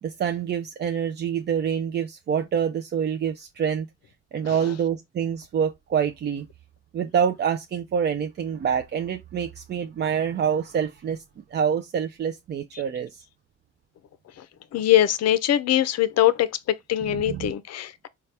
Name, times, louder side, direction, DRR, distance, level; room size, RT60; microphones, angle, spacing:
voice 1, 0.0-3.9 4.3-6.5 6.9-11.2 11.5-13.2 17.0-17.5, right 7 dB, 35° right, 0.4 m, -26 dB
voice 2, 14.7-16.5 16.9-18.1, left 12 dB, 55° left, 0.5 m, -22 dB
4.1 x 2.3 x 3.2 m
cardioid pair, 90°, 30 cm